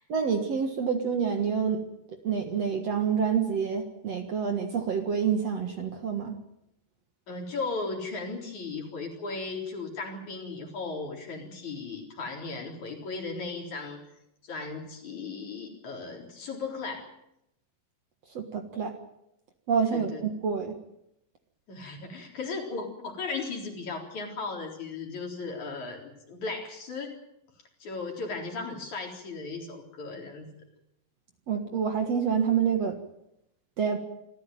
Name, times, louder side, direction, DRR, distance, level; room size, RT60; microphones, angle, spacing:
voice 1, 0.1-1.8 2.2-6.4 18.3-18.9 19.7-20.7 31.5-33.0 33.8-34.0, right 6 dB, 50° right, 5 dB, 2.4 m, -27 dB
voice 2, 7.3-14.0 14.4-17.1 19.9-20.2 21.7-27.1 27.8-30.5, left 4 dB, 55° left, 1 dB, 5.2 m, -36 dB
26.0 x 14.5 x 9.2 m, 0.82 s
omnidirectional pair, 4.2 m